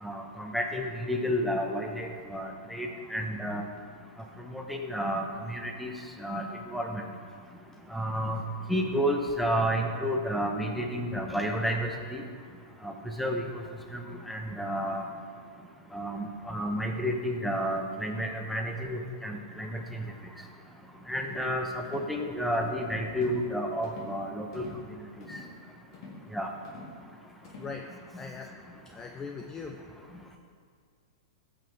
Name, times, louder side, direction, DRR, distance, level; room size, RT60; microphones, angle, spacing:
voice 1, 0.0-3.6 4.5-5.9 6.2-7.0 7.9-8.4 8.7-12.2 12.8-12.9 13.2-13.4 14.1-15.0 15.9-19.8 21.1-24.6 25.3-25.4 26.3-26.5, equal, ahead, 2 dB, 1.1 m, -31 dB
sound 1, 21.2-21.5 21.8-22.1 22.5-22.8 23.2-23.5 23.8-24.2 24.5-24.8 25.2-25.5 25.9-26.3 26.6-27.0 27.4-27.8, left 2 dB, 55° left, 2.5 m, -46 dB
voice 2, 27.6-27.9 28.1-28.5 28.9-29.8, left 5 dB, 15° left, 3 dB, 0.6 m, -40 dB
15.0 x 6.1 x 3.6 m, 2.1 s
hypercardioid pair, 105°, 3 cm